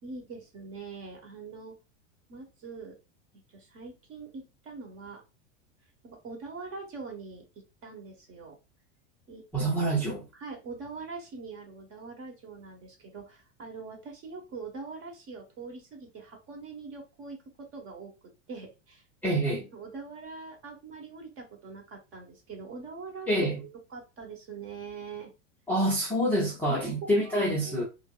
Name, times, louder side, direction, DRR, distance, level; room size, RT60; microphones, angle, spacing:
voice 1, 0.0-1.8 2.3-3.0 3.5-5.2 6.0-8.6 9.3-9.5 10.4-18.1 18.5-19.0 19.7-23.3 23.9-25.3 26.7-26.9 27.2-27.8, right 4 dB, 35° right, 1.2 m, -43 dB
voice 2, 9.5-10.2 19.2-19.7 23.3-23.6 25.7-27.8, right 1 dB, 5° left, 0.5 m, -26 dB
4.9 x 2.1 x 2.4 m
supercardioid pair, 140°, 37 cm